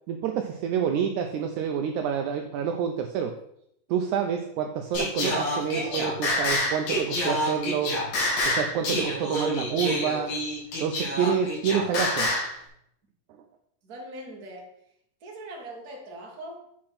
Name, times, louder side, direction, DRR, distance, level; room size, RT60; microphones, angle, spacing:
voice 1, 0.1-3.4 3.9-8.0 8.5-10.3 10.8-12.4, right 8 dB, 80° right, 5 dB, 1.7 m, -28 dB
Singing, 4.9-12.5, left 1 dB, 75° left, 4.3 m, -27 dB
voice 2, 5.7-6.6 13.8-14.7 15.2-16.6, right 1 dB, 35° right, -1 dB, 1.5 m, -40 dB
8.6 x 4.4 x 5.8 m, 0.73 s
omnidirectional pair, 4.1 m